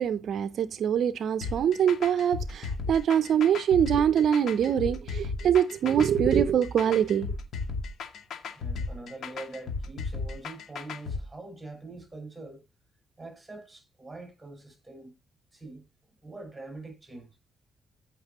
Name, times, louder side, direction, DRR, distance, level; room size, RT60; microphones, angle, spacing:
voice 1, 0.0-7.3, right 9 dB, 65° right, 0.5 m, -24 dB
sound 1, 1.4-11.2, left 4 dB, 65° left, 2.2 m, -34 dB
voice 2, 8.5-12.6 13.2-15.1 15.5-15.8 16.2-17.3, right 2 dB, 15° right, 6.0 m, -44 dB
15.0 x 6.0 x 2.9 m
cardioid pair, 90°, 0 cm